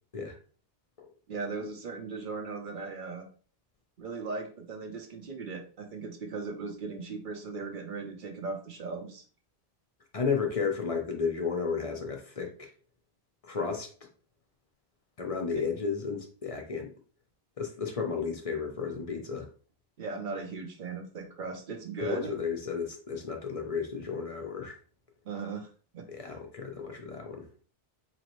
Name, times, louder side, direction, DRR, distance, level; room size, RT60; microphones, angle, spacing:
voice 1, 1.3-3.3 4.0-9.2 20.0-22.3 25.2-25.7 25.9-26.1, right 4 dB, 55° right, 4 dB, 0.9 m, -38 dB
voice 2, 10.1-12.7 13.4-13.9 15.2-16.9 17.6-19.5 22.0-24.8 26.1-27.5, left 5 dB, 40° left, 2 dB, 0.7 m, -33 dB
4.0 x 2.9 x 3.0 m, 0.40 s
omnidirectional pair, 1.0 m